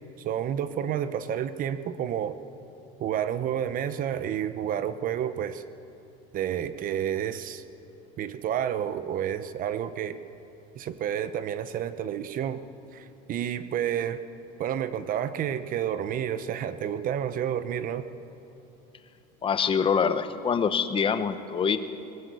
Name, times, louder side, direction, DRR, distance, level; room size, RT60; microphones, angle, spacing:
voice 1, 0.2-2.4 3.0-5.6 6.3-7.6 8.2-10.2 10.8-12.6 12.9-14.2 14.6-18.0, right 9 dB, 45° right, 12 dB, 0.9 m, -30 dB
voice 2, 19.4-21.8, left 6 dB, 25° left, 10 dB, 1.0 m, -25 dB
20.0 x 18.5 x 8.3 m, 2.8 s
cardioid pair, 130°, 20 cm